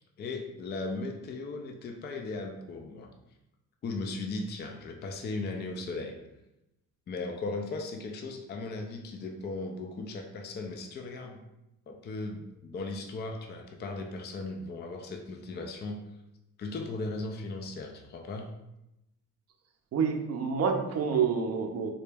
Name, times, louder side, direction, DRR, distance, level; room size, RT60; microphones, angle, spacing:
voice 1, 0.0-3.1 3.8-6.2 7.1-11.4 11.9-16.0 16.6-18.5, left 3 dB, 30° left, 3 dB, 0.4 m, -37 dB
voice 2, 19.9-21.9, right 6 dB, 45° right, 4 dB, 0.5 m, -28 dB
3.9 x 2.2 x 3.3 m, 0.90 s
cardioid pair, 120°, 34 cm